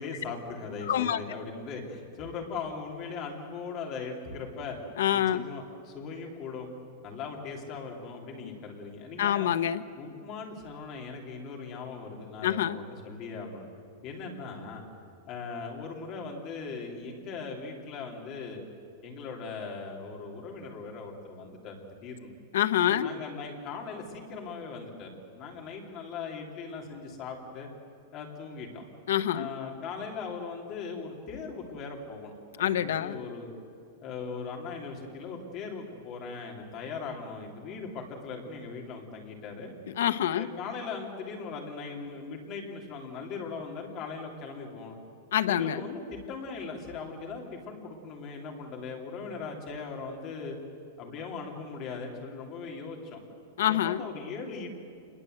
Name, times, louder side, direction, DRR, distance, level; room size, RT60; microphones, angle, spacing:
voice 1, 0.0-4.8 5.1-6.7 7.0-9.5 10.0-13.7 14.0-14.8 15.3-18.6 19.0-22.3 22.9-27.7 28.1-28.8 29.3-33.5 34.0-39.7 40.3-45.0 45.5-50.6 51.0-53.2 53.6-54.7, left 4 dB, 25° left, 1 dB, 3.2 m, -39 dB
voice 2, 0.9-1.2 5.0-5.4 8.4-8.5 9.2-9.8 12.4-12.8 22.5-23.1 29.1-29.5 32.6-33.2 40.0-40.5 45.3-45.8 53.6-54.0, left 11 dB, 70° left, 11 dB, 1.0 m, -26 dB
26.5 x 21.0 x 8.0 m, 2.4 s
supercardioid pair, 175°, 0 cm